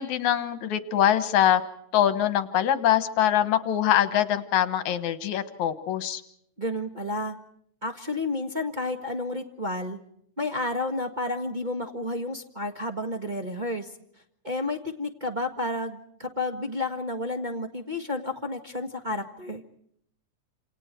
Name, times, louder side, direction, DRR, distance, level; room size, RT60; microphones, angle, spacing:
voice 1, 0.0-1.6 1.9-6.2, left 10 dB, 75° left, 12 dB, 2.6 m, -23 dB
voice 2, 6.6-7.3 7.8-10.0 10.4-13.9 14.4-19.6, left 2 dB, 25° right, 2 dB, 1.2 m, -31 dB
28.5 x 28.0 x 4.5 m, 0.70 s
omnidirectional pair, 3.4 m